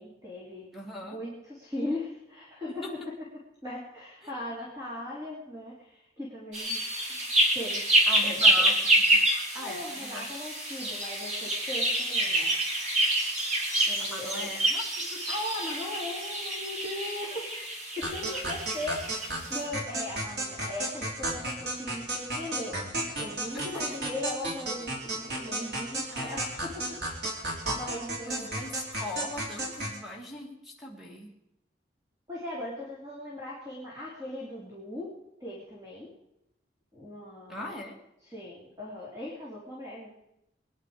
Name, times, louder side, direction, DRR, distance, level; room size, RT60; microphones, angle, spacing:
voice 1, 0.0-0.7 1.0-2.8 3.6-8.6 9.6-12.5 13.9-14.5 15.3-17.7 18.0-22.8 23.2-26.9 27.3-27.4 27.7-28.7 32.3-35.1 35.4-36.1 36.9-37.7 38.2-40.1, left 1 dB, 20° right, -5 dB, 3.4 m, -39 dB
voice 2, 0.7-1.2 2.7-3.0 8.1-9.2 9.5-10.3 14.0-15.3 18.0-18.5 23.5-23.9 26.1-26.4 28.3-31.3 37.5-38.0, left 1 dB, ahead, -1 dB, 2.5 m, -40 dB
sound 1, 6.5-19.4, right 1 dB, 40° right, 3.5 m, -27 dB
sound 2, 18.0-30.0, right 1 dB, 65° right, 3.4 m, -33 dB
22.0 x 10.5 x 5.1 m, 0.85 s
head